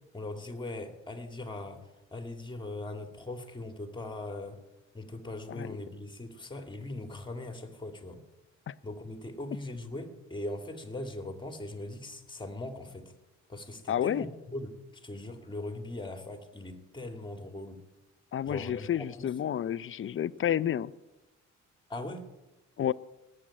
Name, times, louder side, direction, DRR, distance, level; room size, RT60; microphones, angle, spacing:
voice 1, 0.1-4.6 4.9-8.2 8.8-13.1 13.5-17.8 18.5-19.3 21.9-22.3, left 2 dB, 15° left, 2.5 m, -40 dB
voice 2, 13.9-14.2 18.3-20.9 22.8-22.9, left 10 dB, 45° left, 0.6 m, -30 dB
18.5 x 7.8 x 8.8 m
cardioid pair, 90°, 30 cm